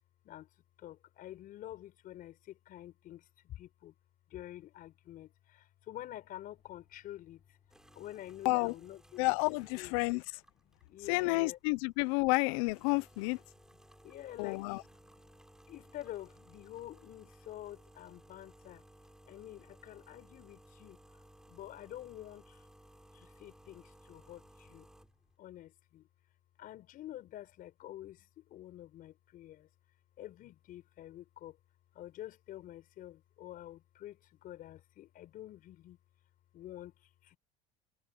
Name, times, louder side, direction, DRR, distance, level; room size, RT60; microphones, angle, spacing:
voice 1, 0.8-3.9 4.3-7.6 7.9-9.4 9.8-9.9 10.5-11.6 13.9-15.4 15.7-18.8 19.3-21.0 21.5-22.7 23.1-24.9 25.4-26.1 26.6-29.7 30.2-31.6 31.9-36.0 36.5-37.4, left 13 dB, 55° left, 4.7 m, -48 dB
sound 1, 6.2-25.4, right 1 dB, 5° right, 6.2 m, -61 dB
voice 2, 9.2-10.2 11.1-13.4 14.4-14.8, left 25 dB, 80° left, 0.8 m, -30 dB
supercardioid pair, 100°, 17 cm